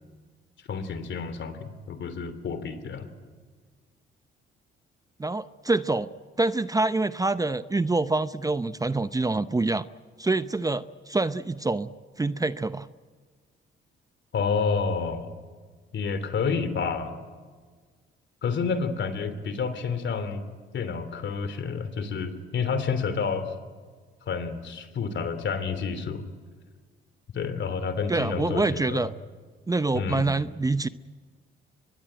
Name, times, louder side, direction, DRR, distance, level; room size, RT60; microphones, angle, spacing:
voice 1, 0.7-3.1 14.3-15.3 15.9-17.1 18.4-20.4 20.7-23.6 24.3-26.2 27.3-29.1 29.9-30.3, left 5 dB, 60° left, 11 dB, 3.1 m, -29 dB
voice 2, 5.2-6.1 6.4-9.8 10.2-11.9 12.2-12.9 28.1-29.1 29.7-30.9, right 3 dB, 15° right, 13 dB, 0.7 m, -26 dB
24.0 x 21.0 x 9.1 m, 1.5 s
supercardioid pair, 75°, 21 cm